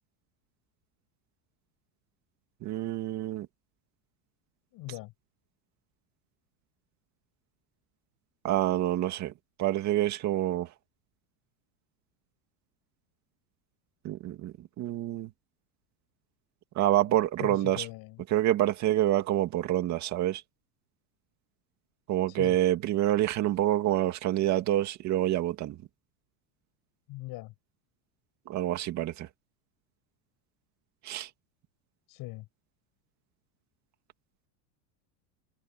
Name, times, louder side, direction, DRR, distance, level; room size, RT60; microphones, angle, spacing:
voice 1, 2.6-3.5 8.4-9.3 9.6-10.7 14.0-15.3 16.8-17.9 18.3-20.4 22.1-25.8 28.5-29.3 31.0-31.3, right 13 dB, 35° right, 2.3 m, -27 dB
voice 2, 4.7-5.1 17.1-18.2 22.3-22.6 27.1-27.5 32.1-32.5, left 20 dB, 45° left, 7.9 m, -41 dB
supercardioid pair, 170°, 49 cm